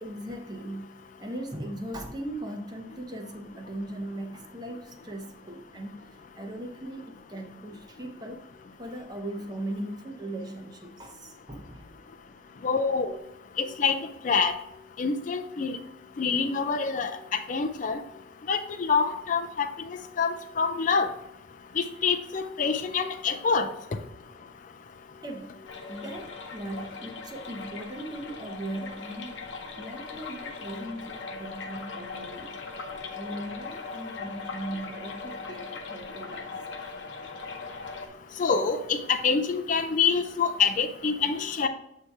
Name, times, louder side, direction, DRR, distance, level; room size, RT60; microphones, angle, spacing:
voice 1, 0.0-8.4 8.8-11.9 25.2-32.6 33.1-36.5, right 1 dB, 20° right, 4 dB, 0.7 m, -39 dB
voice 2, 12.6-13.1 13.6-14.0 14.2-14.5 15.0-15.8 16.2-18.0 18.5-21.1 21.8-23.7 38.4-41.7, left 5 dB, 40° left, 6 dB, 0.4 m, -26 dB
sound 1, 25.6-38.1, left 4 dB, 70° left, 0.7 m, -40 dB
7.7 x 2.8 x 4.6 m, 0.82 s
head